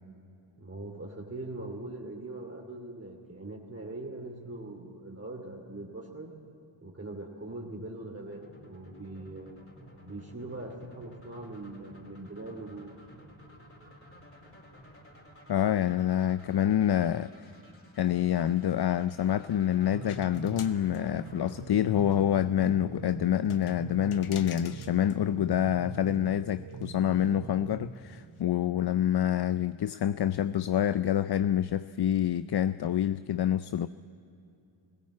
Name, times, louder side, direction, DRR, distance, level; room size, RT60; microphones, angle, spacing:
voice 1, 0.6-6.3 6.8-9.5 10.0-12.9, right 2 dB, 30° right, 2.8 m, -41 dB
sound 1, 8.3-23.2, equal, 25° left, 4.5 m, -54 dB
voice 2, 15.5-17.3 18.0-33.9, left 10 dB, 55° left, 0.5 m, -27 dB
sound 2, 19.8-27.9, right 6 dB, 80° right, 1.3 m, -43 dB
sound 3, 20.1-21.7 21.9-22.3 22.6-22.7 23.4-25.2 25.6-25.7 26.1-26.3 26.7-26.9 27.2-27.3 27.9-28.4, left 8 dB, 85° left, 0.9 m, -48 dB
19.5 x 16.0 x 8.4 m
cardioid pair, 45°, 48 cm